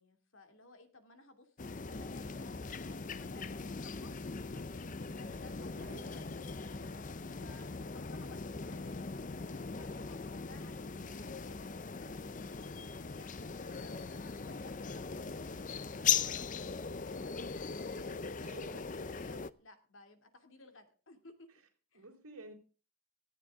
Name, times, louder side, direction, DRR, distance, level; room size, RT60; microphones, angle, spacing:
voice 1, 0.0-18.1 18.6-21.5 21.9-22.0, left 2 dB, 60° left, 7 dB, 2.6 m, -59 dB
sound 1, 1.6-19.5, left 6 dB, 35° left, 0.6 m, -39 dB
voice 2, 5.8-6.1 7.5-7.7 18.4-18.8 21.5-21.6 21.9-22.5, right 2 dB, 75° right, -3 dB, 3.8 m, -53 dB
18.5 x 14.0 x 3.6 m, 0.37 s
head